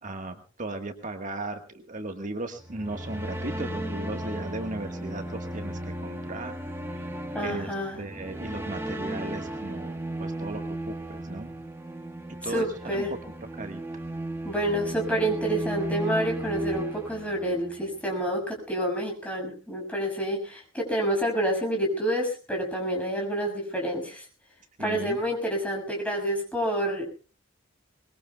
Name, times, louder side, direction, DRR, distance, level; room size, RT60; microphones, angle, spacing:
voice 1, 0.0-10.6 10.9-11.5 12.4-13.0 13.5-14.0 24.8-25.2, right 2 dB, 40° right, 5 dB, 1.5 m, -37 dB
sound 1, 2.6-17.8, right 1 dB, 10° right, 1.6 m, -35 dB
voice 2, 7.3-8.0 12.4-13.1 14.4-24.3 24.8-27.0, equal, 5° left, 1 dB, 6.4 m, -28 dB
23.5 x 21.5 x 2.3 m, 0.37 s
head